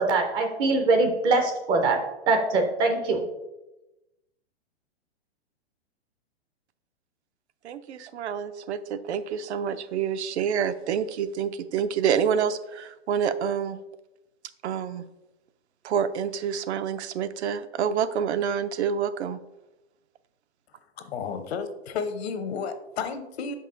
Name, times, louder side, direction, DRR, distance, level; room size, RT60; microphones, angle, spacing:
voice 1, 0.0-2.0 2.3-3.2, right 3 dB, 15° right, 4 dB, 0.3 m, -23 dB
voice 2, 7.6-13.8 14.6-15.0 15.8-19.4, right 8 dB, 85° right, 12 dB, 0.6 m, -27 dB
voice 3, 21.0-23.6, left 5 dB, 70° left, 9 dB, 0.9 m, -32 dB
5.4 x 5.3 x 3.8 m, 0.97 s
hypercardioid pair, 140°, 33 cm